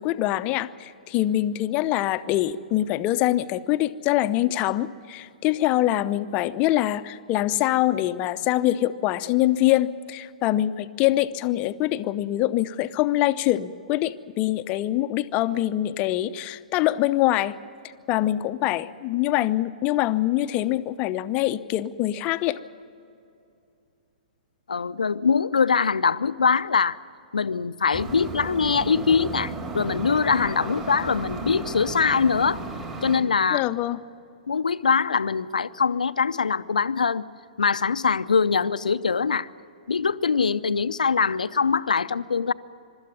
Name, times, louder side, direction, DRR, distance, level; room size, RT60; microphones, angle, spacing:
voice 1, 0.0-17.6 18.1-22.6 33.5-34.0, left 14 dB, 30° left, 13 dB, 0.7 m, -24 dB
voice 2, 24.7-27.0 27.3-32.6 33.0-33.6 34.5-37.2 37.6-39.5 39.9-42.5, left 5 dB, 75° left, 14 dB, 0.6 m, -23 dB
sound 1, 27.9-33.2, right 2 dB, 20° right, 3.6 m, -34 dB
24.0 x 13.0 x 9.6 m, 2.6 s
figure-of-eight pair, 115°, 4 cm